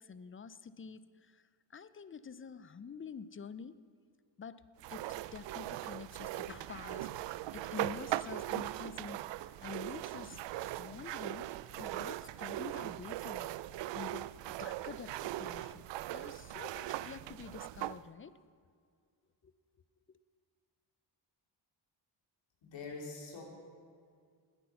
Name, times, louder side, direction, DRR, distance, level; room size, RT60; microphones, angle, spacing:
voice 1, 0.0-3.8 4.4-7.1 7.5-10.4 10.8-11.5 11.8-13.5 13.9-18.3 19.4-19.5 20.1-20.2, left 6 dB, 30° left, 15 dB, 0.5 m, -48 dB
sound 1, 4.8-18.0, right 15 dB, 70° right, 0.5 m, -40 dB
voice 2, 22.6-23.4, left 4 dB, 75° left, -1 dB, 3.4 m, -44 dB
19.5 x 8.6 x 5.8 m, 2.2 s
cardioid pair, 95°, 44 cm